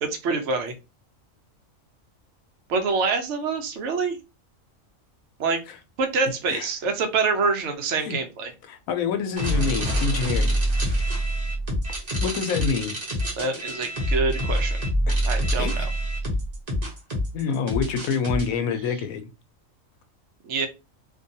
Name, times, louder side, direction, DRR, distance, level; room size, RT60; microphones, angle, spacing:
voice 1, 0.0-0.7 2.7-4.2 5.4-5.6 6.0-8.5 13.4-14.8 15.2-15.9 18.8-19.0 20.4-20.7, right 4 dB, 65° right, 5 dB, 0.9 m, -26 dB
voice 2, 8.7-10.6 12.2-12.9 15.1-15.2 15.6-15.7 17.3-19.3, left 6 dB, 85° left, 7 dB, 1.0 m, -26 dB
sound 1, 9.4-18.4, equal, 35° right, 0.7 m, -26 dB
2.6 x 2.2 x 2.7 m, 0.27 s
omnidirectional pair, 1.4 m